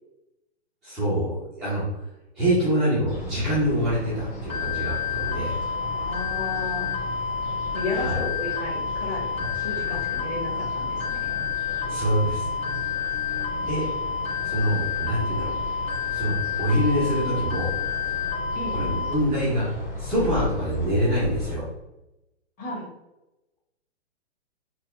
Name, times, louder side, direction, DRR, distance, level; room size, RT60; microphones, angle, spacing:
voice 1, 0.8-1.8 2.4-5.6 7.9-8.2 11.9-12.5 13.6-13.9 14.4-15.5 16.1-17.7 18.7-19.7 20.0-21.7, equal, ahead, -13 dB, 0.3 m, -25 dB
sound 1, 3.1-21.5, left 2 dB, 75° left, 1.5 m, -36 dB
sound 2, 4.5-19.1, left 6 dB, 55° left, 1.2 m, -29 dB
voice 2, 5.9-7.0 7.7-11.4 18.5-18.8 22.6-22.9, left 2 dB, 20° left, -4 dB, 1.2 m, -34 dB
4.0 x 2.1 x 2.4 m, 0.94 s
figure-of-eight pair, 120°, 34 cm